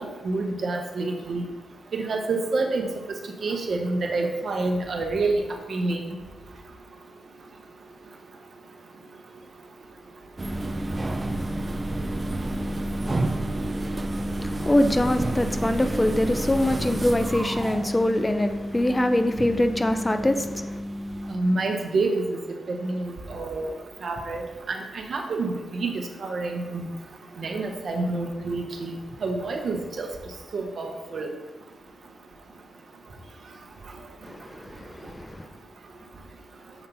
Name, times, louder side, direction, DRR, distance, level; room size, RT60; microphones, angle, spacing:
voice 1, 0.0-1.4 1.9-2.9 3.4-5.4 5.7-6.0 21.3-22.2 22.7-23.7 24.0-24.4 24.7-24.8 25.1-25.9 26.2-26.9 27.4-28.9 29.2-30.1 30.5-31.3, right 3 dB, 65° right, 0.8 m, -27 dB
sound 1, 10.4-21.4, right 1 dB, 35° right, 0.4 m, -30 dB
voice 2, 14.4-20.8 34.2-35.5, left 1 dB, 20° left, 0.5 m, -24 dB
7.0 x 2.8 x 5.3 m
supercardioid pair, 50°, 0 cm